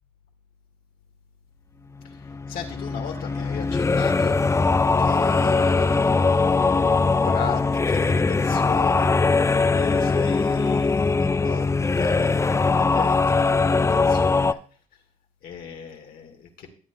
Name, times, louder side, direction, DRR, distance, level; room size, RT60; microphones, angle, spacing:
sound 1, 2.0-14.5, left 4 dB, 20° left, 0.4 m, -21 dB
voice 1, 2.5-4.4 5.0-6.3 7.2-12.6 12.9-14.6 15.4-16.7, left 7 dB, 80° left, 3 dB, 1.6 m, -36 dB
14.0 x 7.9 x 2.2 m, 0.43 s
supercardioid pair, 60°, 15 cm